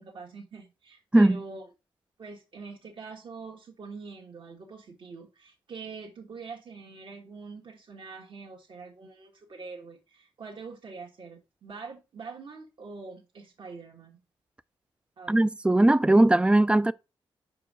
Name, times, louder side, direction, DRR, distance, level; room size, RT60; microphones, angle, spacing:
voice 1, 0.0-1.7 2.2-14.2 15.2-15.4, right 4 dB, 65° right, 1.7 m, -44 dB
voice 2, 15.3-16.9, right 1 dB, 10° right, 0.4 m, -19 dB
5.5 x 4.6 x 6.2 m
cardioid pair, 75°, 9 cm